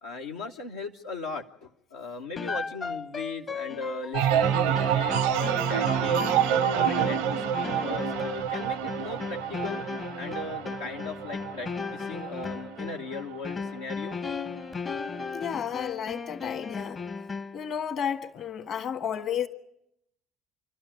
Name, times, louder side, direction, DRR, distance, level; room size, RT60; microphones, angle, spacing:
voice 1, 0.0-6.4 6.7-9.8 10.2-14.5 15.3-15.5, left 3 dB, 90° left, 0.9 m, -38 dB
sound 1, 2.4-17.7, left 5 dB, 35° left, 0.8 m, -36 dB
sound 2, 4.1-13.7 14.1-14.6, right 10 dB, 80° right, 0.7 m, -28 dB
voice 2, 15.3-17.0 17.5-19.5, left 8 dB, 55° left, 1.6 m, -32 dB
27.0 x 12.5 x 9.3 m
hypercardioid pair, 60°, 0 cm